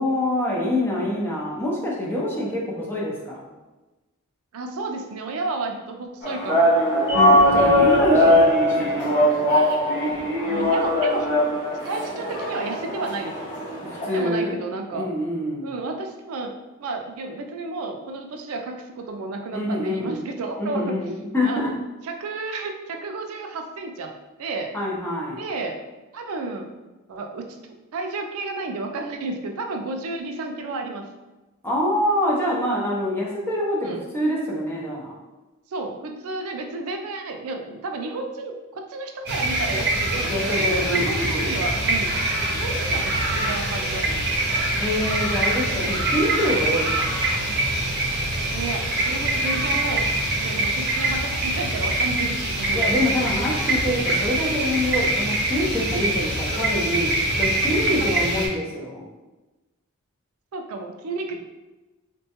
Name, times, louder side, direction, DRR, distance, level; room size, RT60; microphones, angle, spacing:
voice 1, 0.0-3.4 7.1-9.3 13.8-14.6 14.9-15.7 19.5-20.2 20.6-21.7 24.7-25.4 31.6-35.1 40.3-41.5 44.8-47.2 52.7-57.1 57.4-59.0, left 1 dB, 10° left, -5 dB, 0.5 m, -25 dB
voice 2, 4.5-6.7 7.1-7.2 10.4-11.3 11.8-13.5 14.1-15.1 15.6-16.5 16.8-21.0 21.4-21.7 22.0-24.7 25.4-25.8 26.1-26.7 27.1-27.6 27.9-31.1 33.8-34.0 35.7-42.2 42.5-44.5 48.4-50.1 50.4-52.9 58.0-58.1 60.5-61.3, right 3 dB, 75° right, 4 dB, 0.4 m, -32 dB
sound 1, 6.2-14.2, left 1 dB, 50° left, 1.1 m, -20 dB
sound 2, 39.2-58.5, right 1 dB, 50° right, 0.7 m, -24 dB
3.6 x 2.2 x 2.8 m, 1.1 s
head